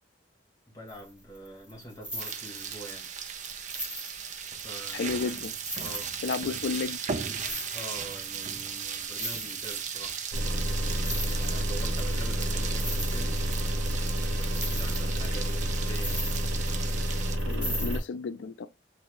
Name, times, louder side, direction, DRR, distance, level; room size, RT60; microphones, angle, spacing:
voice 1, 0.7-3.1 4.6-5.2 5.7-6.1 7.7-10.2 11.2-13.4 14.3-16.4, right 1 dB, 20° left, 1.1 m, -45 dB
sound 1, 0.9-1.1 1.3-2.9 3.3-3.4 3.7-4.8 5.3-5.4 5.6-6.7 7.3-8.2 8.6-8.7 8.8-9.9 10.8-11.8 12.1-12.2 12.5-13.9 14.2-16.9 17.3-18.0, equal, 5° right, 1.3 m, -38 dB
sound 2, 2.2-17.4, right 7 dB, 40° right, 0.4 m, -37 dB
voice 2, 4.9-5.5 6.2-7.0 17.4-18.7, left 4 dB, 75° left, 0.3 m, -32 dB
sound 3, 10.3-18.0, equal, 85° right, 0.8 m, -29 dB
3.1 x 2.7 x 3.0 m
head